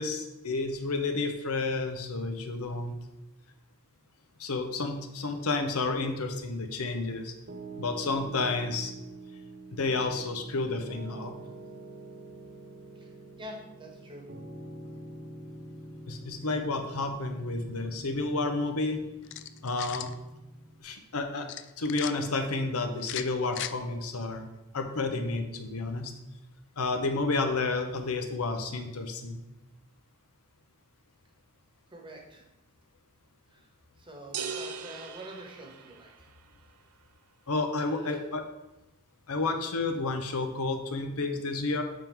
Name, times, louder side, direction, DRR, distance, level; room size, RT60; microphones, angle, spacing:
voice 1, 0.0-2.9 4.4-7.3 7.8-8.9 9.7-11.3 16.1-19.0 19.6-20.1 20.8-21.5 21.8-24.5 24.7-26.1 26.8-29.4 37.5-38.4 39.3-41.8, left 3 dB, 70° left, 6 dB, 0.8 m, -31 dB
Piano, 7.5-20.8, right 2 dB, 45° right, 0.6 m, -46 dB
voice 2, 13.4-14.2 31.9-32.4 33.5-33.7 34.0-36.3 37.8-38.2, equal, 20° right, 1 dB, 1.2 m, -46 dB
sound 1, 19.2-20.1 21.5-22.1 23.0-23.7, left 12 dB, 55° left, 0.3 m, -38 dB
sound 2, 34.3-36.4, right 6 dB, 85° right, 0.5 m, -39 dB
7.5 x 3.6 x 4.5 m, 0.94 s
head